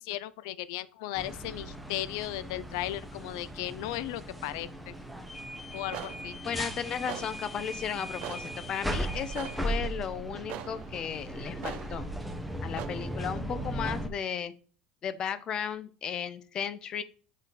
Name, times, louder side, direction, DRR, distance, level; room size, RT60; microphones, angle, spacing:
voice 1, 0.0-4.9 5.7-6.4, left 14 dB, 85° left, 0.3 m, -36 dB
sound 1, 1.1-14.1, equal, ahead, 0.7 m, -37 dB
sound 2, 5.4-12.9, right 11 dB, 60° right, 0.6 m, -44 dB
voice 2, 6.4-12.1 12.6-14.5 15.0-17.0, left 8 dB, 35° left, 0.6 m, -35 dB
8.3 x 3.2 x 5.2 m
cardioid pair, 145°, 2 cm